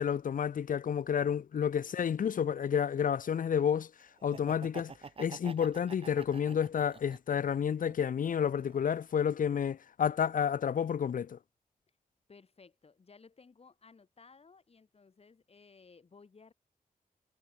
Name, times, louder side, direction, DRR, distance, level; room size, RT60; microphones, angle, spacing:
voice 1, 0.0-3.9 4.2-4.9 5.2-11.4, left 8 dB, 70° left, 0.6 m, -30 dB
Laughter, 4.2-7.4 7.8-8.9, right 5 dB, 40° right, 1.3 m, -48 dB
voice 2, 12.3-16.5, left 4 dB, 45° left, 6.1 m, -58 dB
wide cardioid pair, 170°, 14 cm